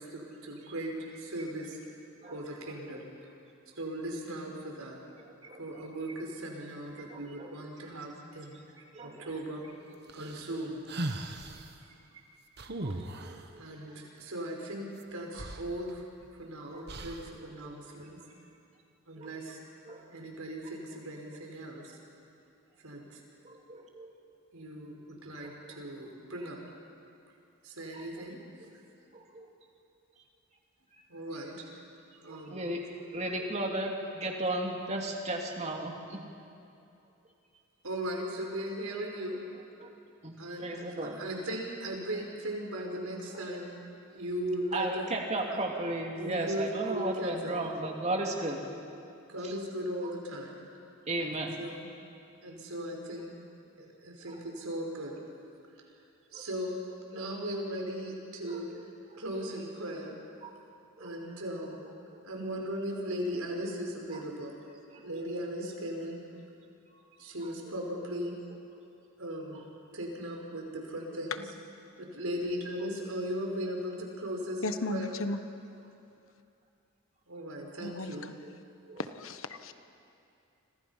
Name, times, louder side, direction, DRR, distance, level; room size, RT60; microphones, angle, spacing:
voice 1, 0.0-1.8 2.3-3.1 3.8-5.0 5.4-9.9 10.1-10.9 12.9-13.0 13.6-16.1 16.4-18.2 19.1-19.6 20.1-22.0 22.8-23.2 24.5-26.6 27.6-28.4 31.1-31.6 32.2-32.6 37.8-39.4 40.4-43.7 44.1-45.1 46.2-47.5 49.3-50.6 51.2-51.9 52.4-53.3 53.8-55.2 56.3-56.7 57.1-58.7 59.2-60.1 61.0-61.8 62.2-64.5 64.9-66.2 67.2-68.3 69.2-69.6 69.9-71.4 72.0-75.1 77.3-78.3, equal, 85° right, 0 dB, 5.0 m, -38 dB
voice 2, 2.2-2.7 5.2-5.9 7.1-7.5 8.9-9.3 10.2-10.3 12.8-14.0 16.7-17.0 17.6-17.7 19.2-19.3 19.8-20.1 23.4-24.1 25.4-25.8 27.9-28.0 28.6-28.7 29.1-29.5 31.0-31.1 32.3-36.2 39.8-39.9 40.2-41.2 43.3-43.4 44.7-48.6 49.4-49.5 50.0-50.1 51.1-51.6 54.2-54.4 56.3-56.4 57.1-57.3 58.4-58.8 59.1-59.5 60.4-60.5 61.0-61.1 62.1-62.2 64.1-64.2 64.9-65.1 66.9-67.0 67.7-67.8 69.5-69.6 71.1-71.2 78.4-78.5 78.9-79.0, right 2 dB, 30° right, 1 dB, 2.8 m, -36 dB
sound 1, 10.1-11.7 12.6-13.5 15.0-15.1 15.3-16.3 16.9-17.4, right 1 dB, 50° right, 1.5 m, -38 dB
voice 3, 74.6-75.4 77.8-78.3 79.0-79.7, left 2 dB, 70° left, 9 dB, 1.3 m, -35 dB
30.0 x 26.0 x 5.8 m, 2.6 s
head